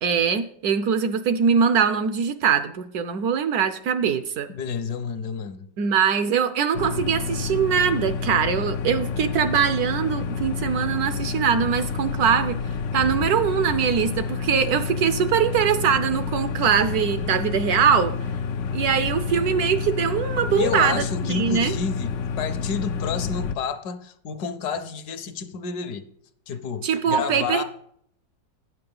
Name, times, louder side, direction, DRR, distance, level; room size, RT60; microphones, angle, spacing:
voice 1, 0.0-4.5 5.8-12.6 12.9-18.1 18.7-21.0 21.3-21.7 26.8-27.6, right 7 dB, 70° right, 1.0 m, -22 dB
voice 2, 4.5-5.7 20.5-26.1 26.5-27.6, left 6 dB, 70° left, 1.2 m, -30 dB
sound 1, 6.7-23.6, left 5 dB, 90° left, 0.6 m, -29 dB
9.2 x 6.8 x 5.3 m
omnidirectional pair, 1.9 m